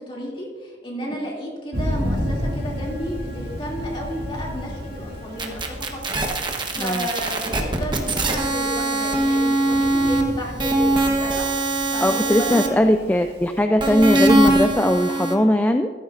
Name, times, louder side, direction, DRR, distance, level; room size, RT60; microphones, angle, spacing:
voice 1, 0.1-13.3, equal, 30° left, -3 dB, 2.6 m, -33 dB
Bowed string instrument, 1.7-6.0, left 1 dB, 80° left, 3.4 m, -44 dB
Thunder, 1.7-13.6, equal, 65° right, 2.0 m, -33 dB
sound 1, 5.4-10.2 10.6-12.7 13.8-15.3, right 2 dB, 25° right, 1.1 m, -21 dB
voice 2, 6.8-7.1 12.0-15.9, left 1 dB, 10° left, 7 dB, 0.3 m, -19 dB
14.5 x 12.5 x 2.5 m, 1.4 s
head